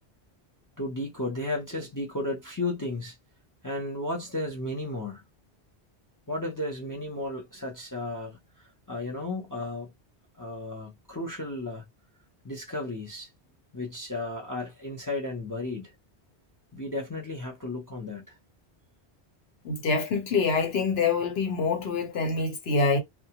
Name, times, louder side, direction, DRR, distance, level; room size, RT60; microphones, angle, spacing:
voice 1, 0.8-3.2 3.6-5.2 6.3-8.4 8.9-9.9 10.4-11.8 12.4-13.3 13.7-15.9 16.7-18.3, left 2 dB, 25° left, 0.5 m, -34 dB
voice 2, 19.6-23.0, left 4 dB, 65° left, 1.1 m, -25 dB
2.3 x 2.2 x 2.8 m
omnidirectional pair, 1.1 m